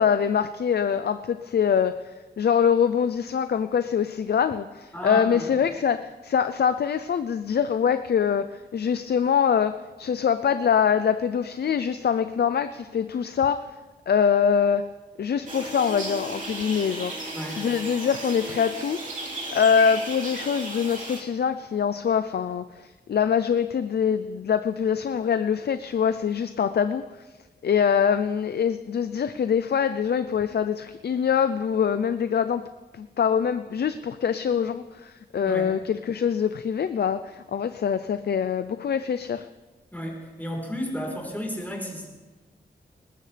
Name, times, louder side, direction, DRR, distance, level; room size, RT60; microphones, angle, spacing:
voice 1, 0.0-13.8 14.1-14.8 15.2-17.1 17.6-19.0 19.5-27.0 27.6-32.6 32.9-39.5, left 7 dB, 65° left, 11 dB, 0.5 m, -24 dB
voice 2, 4.9-5.5 17.3-17.6 35.4-35.7 39.9-42.1, equal, 10° left, -1 dB, 4.1 m, -33 dB
sound 1, 15.5-21.2, right 2 dB, 45° right, 3.1 m, -35 dB
20.0 x 19.0 x 3.4 m, 1.2 s
wide cardioid pair, 130°, 18 cm